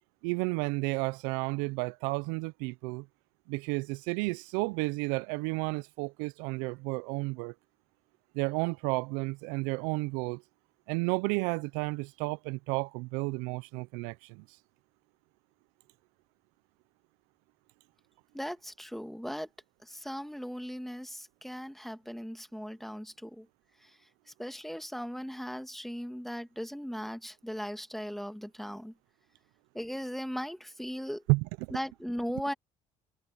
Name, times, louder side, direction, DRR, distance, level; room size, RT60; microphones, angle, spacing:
voice 1, 0.2-3.1 3.5-7.5 8.3-10.4 10.9-14.4 31.3-31.8, right 26 dB, 75° right, 1.1 m, -32 dB
voice 2, 18.3-19.5 19.8-23.5 24.4-28.9 29.7-31.2 31.7-32.5, equal, ahead, 2.5 m, -38 dB
hypercardioid pair, 55°, 16 cm